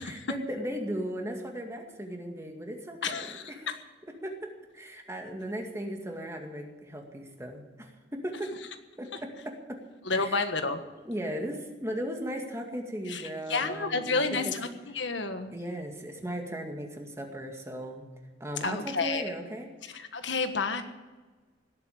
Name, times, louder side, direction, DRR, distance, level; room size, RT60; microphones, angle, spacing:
voice 1, 0.1-3.7 4.2-8.6 9.0-9.8 10.1-10.4 11.1-14.5 15.5-18.1 18.4-19.7, equal, 15° right, 2 dB, 2.2 m, -37 dB
voice 2, 3.0-3.7 10.1-10.8 13.1-14.7 14.9-15.5 18.6-19.2 19.9-20.8, left 4 dB, 85° left, 7 dB, 1.5 m, -30 dB
18.0 x 8.6 x 8.5 m, 1.3 s
head